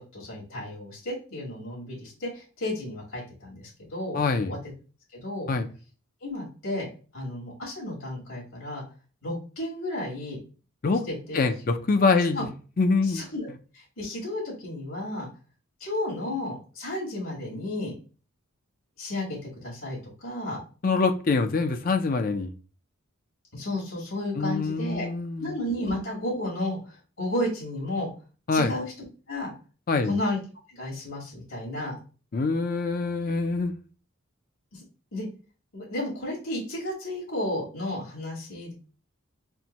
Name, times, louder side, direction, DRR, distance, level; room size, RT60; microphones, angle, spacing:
voice 1, 0.0-4.2 4.5-4.6 5.1-5.5 6.2-6.9 7.1-8.8 9.2-10.4 11.1-11.4 12.3-12.4 13.0-13.5 13.7-15.3 15.8-17.9 19.0-20.6 23.5-25.1 25.4-28.1 28.5-29.5 30.0-30.4 30.7-32.0 34.7-34.8 35.1-35.3 35.7-38.7, left 1 dB, 75° left, 2.2 m, -33 dB
voice 2, 4.1-4.5 5.5-5.7 10.8-11.0 11.3-12.5 12.8-13.2 20.8-22.5 24.4-25.5 28.5-28.7 29.9-30.2 32.3-33.8, left 4 dB, 40° left, 0.4 m, -24 dB
4.4 x 2.1 x 4.0 m
head